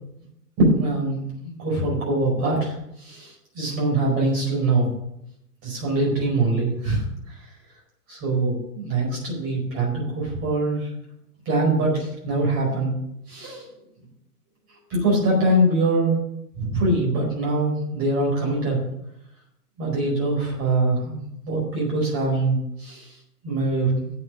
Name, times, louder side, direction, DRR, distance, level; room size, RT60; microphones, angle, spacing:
voice 1, 0.6-2.7 3.0-4.9 5.6-7.0 8.1-10.9 11.4-12.9 13.3-13.6 14.9-16.1 16.6-18.8 19.8-21.2 21.4-23.0 23.4-24.1, right 2 dB, 30° right, -3 dB, 4.8 m, -23 dB
8.7 x 6.8 x 8.6 m, 0.79 s
figure-of-eight pair, 115°, 47 cm